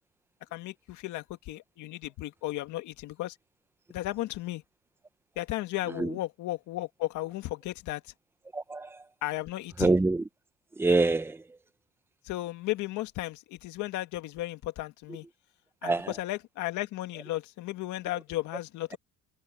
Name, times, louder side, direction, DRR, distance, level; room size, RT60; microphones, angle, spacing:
voice 1, 0.5-3.4 3.9-4.6 5.4-8.1 9.2-10.0 12.2-15.3 15.8-19.0, left 16 dB, 70° left, 1.9 m, -35 dB
voice 2, 8.5-9.1 9.8-10.2 10.8-11.6 15.8-16.1, right 3 dB, 5° right, 0.9 m, -26 dB
cardioid pair, 125°, 31 cm